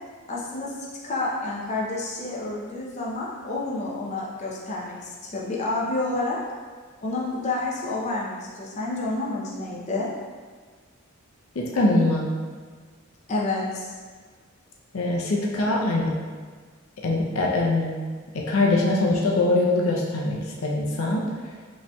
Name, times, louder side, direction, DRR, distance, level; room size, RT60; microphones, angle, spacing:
voice 1, 0.3-6.4 7.0-10.1 13.3-13.9, left 2 dB, 35° left, -5 dB, 0.6 m, -29 dB
voice 2, 11.6-12.3 14.9-16.1 17.0-18.0 18.3-21.2, left 2 dB, 80° left, -2 dB, 0.6 m, -23 dB
5.2 x 2.8 x 2.3 m, 1.5 s
head